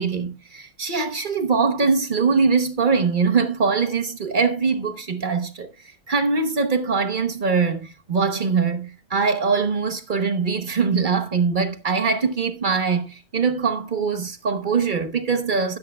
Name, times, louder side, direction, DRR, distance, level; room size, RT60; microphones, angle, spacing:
voice 1, 0.0-5.7 6.1-15.8, right 5 dB, 55° right, 0.5 m, -22 dB
13.0 x 10.0 x 2.3 m
omnidirectional pair, 2.3 m